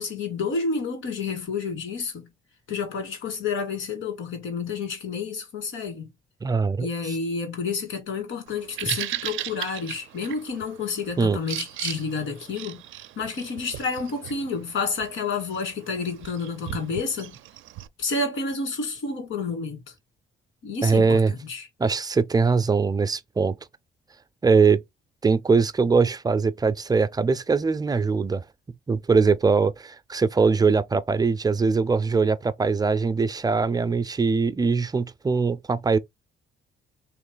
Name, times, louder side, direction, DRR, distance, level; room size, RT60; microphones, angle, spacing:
voice 1, 0.0-2.3 2.7-6.1 6.8-12.8 13.2-17.4 18.0-19.9 20.6-21.7, left 4 dB, 80° left, 2.0 m, -30 dB
voice 2, 6.4-7.1 11.2-11.4 20.8-21.3 21.8-23.6 24.4-24.8 25.2-28.4 28.9-36.0, right 4 dB, 20° right, 0.4 m, -22 dB
Bird vocalization bird call bird song, 8.5-17.9, right 14 dB, 80° right, 0.4 m, -37 dB
3.1 x 3.0 x 3.8 m
cardioid pair, 90°, 20 cm